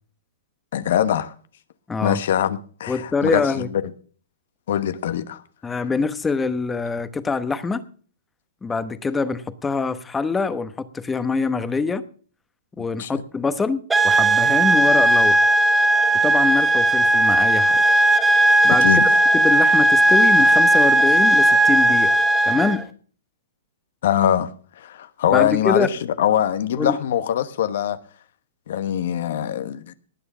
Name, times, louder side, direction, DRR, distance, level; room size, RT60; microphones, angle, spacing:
voice 1, 0.7-1.3 2.0-3.8 4.7-5.4 5.8-5.9 13.0-13.2 18.8-19.1 24.0-24.5 24.8-28.0 28.7-29.9, left 10 dB, 65° left, 1.2 m, -22 dB
voice 2, 1.9-2.2 2.9-3.7 5.6-7.8 8.6-12.0 12.8-15.4 16.2-17.8 18.6-18.9 19.3-22.1 22.4-22.8 25.3-25.9 26.8-27.0, left 4 dB, 10° left, 1.0 m, -24 dB
sound 1, 13.9-22.8, right 1 dB, 10° right, 1.3 m, -16 dB
19.0 x 6.7 x 6.1 m
hypercardioid pair, 140°, 0 cm